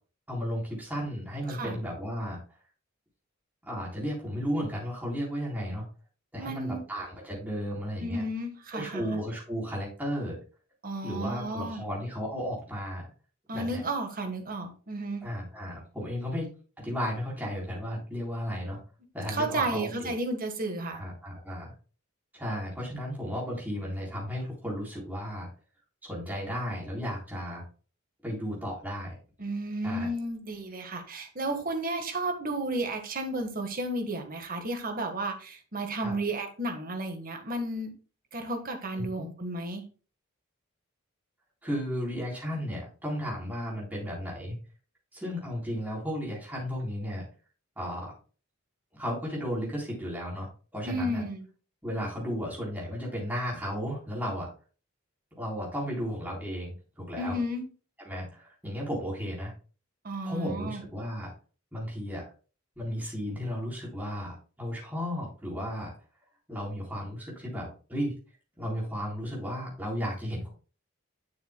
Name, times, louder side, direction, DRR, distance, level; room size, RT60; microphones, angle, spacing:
voice 1, 0.3-2.4 3.6-5.9 6.3-8.2 8.7-10.4 11.0-13.1 13.5-13.8 15.2-16.5 16.8-18.8 19.1-20.2 20.9-21.7 22.3-25.5 26.0-27.6 28.2-29.2 29.8-30.1 36.0-36.1 39.0-39.3 41.6-44.6 45.1-47.2 47.8-48.1 48.9-51.2 51.8-54.5 55.4-57.4 58.0-59.5 60.2-61.3 61.7-62.2 62.8-65.9 66.5-68.1 68.6-70.5, equal, 10° right, -5 dB, 3.7 m, -34 dB
voice 2, 1.5-1.8 6.4-6.8 8.0-9.0 10.8-11.8 13.5-15.2 19.3-21.0 29.4-37.9 38.3-39.8 50.9-51.4 57.2-57.6 60.0-60.8, right 1 dB, 40° right, 5 dB, 1.4 m, -33 dB
10.5 x 6.6 x 2.2 m, 0.37 s
head